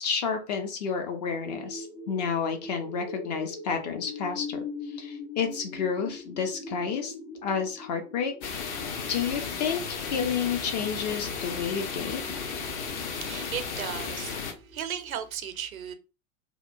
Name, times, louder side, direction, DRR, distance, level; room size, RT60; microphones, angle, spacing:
voice 1, 0.0-7.1 7.4-12.2, left 6 dB, 30° left, 0.4 m, -31 dB
sound 1, 1.0-15.3, left 3 dB, 85° left, 1.0 m, -43 dB
sound 2, 8.4-14.5, left 5 dB, 55° left, 0.7 m, -34 dB
voice 2, 12.9-15.9, right 8 dB, 70° right, 0.6 m, -36 dB
2.7 x 2.1 x 2.4 m
figure-of-eight pair, 95°, 43 cm